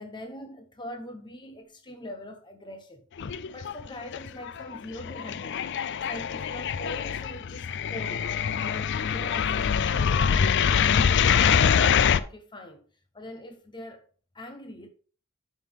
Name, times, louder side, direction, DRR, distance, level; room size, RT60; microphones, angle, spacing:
voice 1, 0.0-3.0 3.5-5.6 6.0-8.3 8.6-10.5 10.9-12.9 13.1-14.0 14.3-14.9, left 1 dB, 20° left, 1.0 m, -42 dB
sound 1, 3.2-3.9 4.1-12.2, left 7 dB, 55° left, 0.4 m, -24 dB
12.0 x 5.6 x 3.5 m
head